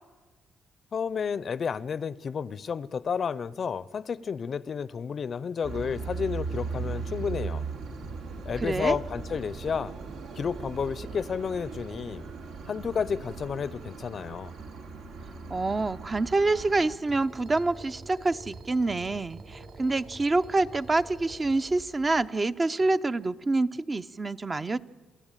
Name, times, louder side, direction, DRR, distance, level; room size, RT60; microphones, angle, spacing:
voice 1, 0.9-7.6 8.4-9.9 10.4-12.3 12.7-14.5, left 6 dB, 50° left, 0.6 m, -31 dB
sound 1, 5.6-17.0, right 4 dB, 80° right, 2.8 m, -38 dB
voice 2, 8.6-9.0 15.5-24.8, right 2 dB, 25° right, 0.7 m, -27 dB
sound 2, 17.0-22.3, right 3 dB, 50° right, 4.9 m, -47 dB
27.5 x 13.5 x 9.0 m
cardioid pair, 90°, 0 cm